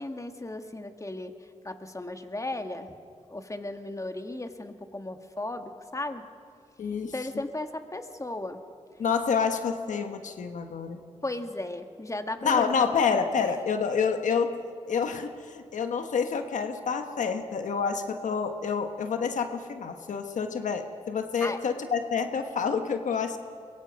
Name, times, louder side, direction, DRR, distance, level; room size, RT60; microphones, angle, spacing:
voice 1, 0.0-1.3 1.6-2.9 3.3-6.3 7.0-8.6 11.2-13.2 21.4-21.6, left 2 dB, 25° left, 6 dB, 1.8 m, -35 dB
voice 2, 6.8-7.4 9.0-11.0 12.4-14.5 14.8-23.4, left 6 dB, 90° left, 6 dB, 1.2 m, -28 dB
23.5 x 22.5 x 5.2 m, 2.3 s
cardioid pair, 45°, 12 cm